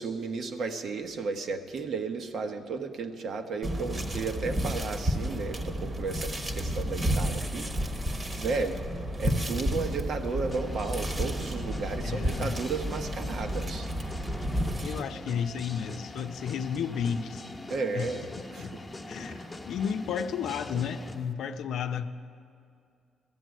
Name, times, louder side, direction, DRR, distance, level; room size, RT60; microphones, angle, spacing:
voice 1, 0.0-7.7 8.4-8.8 9.2-13.9 17.7-18.8 19.3-19.6, right 4 dB, 60° right, 6 dB, 1.1 m, -34 dB
sound 1, 3.6-15.0, equal, 30° right, 1.2 m, -31 dB
sound 2, 10.5-21.2, left 2 dB, 20° left, 1.0 m, -43 dB
voice 2, 12.0-12.5 14.8-17.4 17.9-18.1 18.6-18.7 19.1-19.4 19.7-22.1, left 7 dB, 75° left, 8 dB, 0.6 m, -32 dB
14.0 x 7.6 x 9.3 m, 2.4 s
cardioid pair, 90°, 0 cm